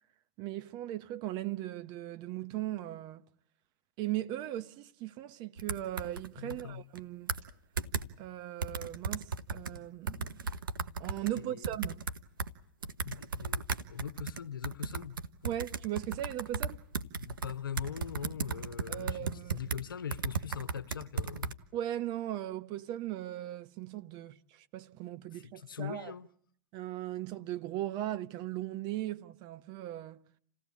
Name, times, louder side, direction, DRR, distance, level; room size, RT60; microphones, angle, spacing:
voice 1, 0.4-3.2 4.0-7.3 8.2-10.4 11.0-12.1 15.4-16.8 18.9-19.6 21.7-26.1 26.7-30.2, right 13 dB, 40° right, 1.0 m, -38 dB
sound 1, 5.6-6.6 6.9-7.0 7.3-7.5 7.8-8.0 8.6-9.8 10.1-12.5 12.8-19.8 20.1-21.5, right 5 dB, 90° right, 1.2 m, -35 dB
voice 2, 6.4-6.8 11.3-11.7 13.0-15.2 15.4-15.5 17.2-21.5 25.3-26.3, left 8 dB, 85° left, 1.0 m, -41 dB
28.0 x 17.0 x 8.4 m
hypercardioid pair, 110°, 11 cm